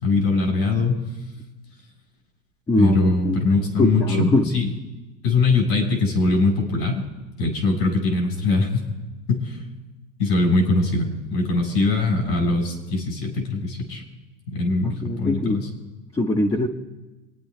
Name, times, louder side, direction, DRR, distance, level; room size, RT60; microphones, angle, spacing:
voice 1, 0.0-1.0 2.8-4.7 5.2-7.1 7.4-9.0 9.3-9.7 10.2-14.0 14.5-15.7, left 3 dB, 80° left, 2 dB, 4.9 m, -22 dB
voice 2, 2.7-3.4 3.8-4.5 14.8-15.7 16.1-16.7, left 1 dB, 10° left, 0 dB, 0.9 m, -22 dB
27.0 x 9.7 x 3.3 m, 1.1 s
hypercardioid pair, 110°, 50 cm